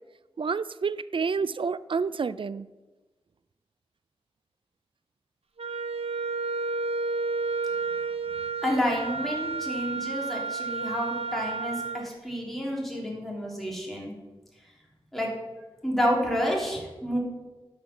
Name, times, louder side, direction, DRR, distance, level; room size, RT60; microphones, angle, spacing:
voice 1, 0.4-2.7, right 5 dB, 55° right, 16 dB, 0.4 m, -29 dB
Wind instrument woodwind instrument, 5.6-12.1, right 4 dB, 75° right, 0.8 m, -31 dB
voice 2, 8.6-14.1 15.1-15.3 15.8-17.2, equal, ahead, -3 dB, 3.0 m, -29 dB
12.0 x 5.1 x 6.0 m, 1.2 s
wide cardioid pair, 70°, 10 cm